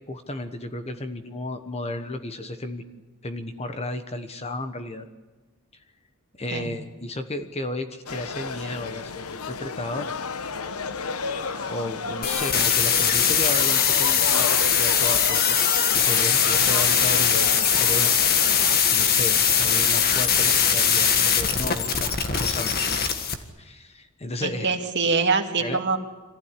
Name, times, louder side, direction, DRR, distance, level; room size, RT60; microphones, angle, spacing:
voice 1, 0.1-2.8 3.2-5.1 6.4-10.1 11.2-15.6 15.9-18.1 18.9-22.8 23.6-24.7 25.6-25.8, left 1 dB, 30° left, 7 dB, 1.2 m, -33 dB
sound 1, 8.1-18.8, left 4 dB, 90° left, 1.0 m, -32 dB
sound 2, 12.2-23.3, left 7 dB, 45° left, 1.7 m, -21 dB
voice 2, 24.4-26.0, right 4 dB, 55° right, 4 dB, 2.3 m, -24 dB
25.0 x 15.5 x 9.9 m, 1.2 s
head